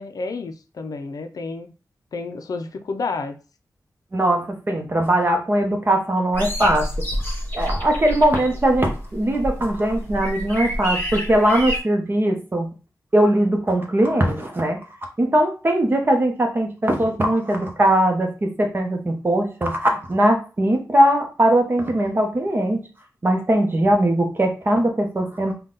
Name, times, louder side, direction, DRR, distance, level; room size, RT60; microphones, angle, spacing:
voice 1, 0.0-1.7 2.1-3.4, left 4 dB, 65° left, 0.4 m, -30 dB
voice 2, 4.1-6.9 7.5-12.7 13.1-14.8 15.2-22.8 23.2-25.5, right 1 dB, 35° right, 0.9 m, -20 dB
sound 1, 6.3-11.8, equal, 30° left, 1.3 m, -28 dB
3.8 x 2.3 x 3.8 m
wide cardioid pair, 120°, 7 cm